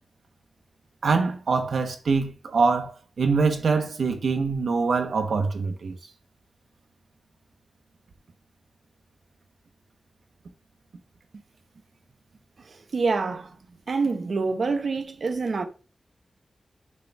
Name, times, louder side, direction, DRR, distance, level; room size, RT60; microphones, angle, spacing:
voice 1, 1.0-5.9, right 4 dB, 90° right, 1.1 m, -24 dB
voice 2, 12.6-13.5 13.9-15.7, right 4 dB, 65° right, 0.8 m, -26 dB
6.6 x 3.5 x 4.8 m
wide cardioid pair, 140°, 0 cm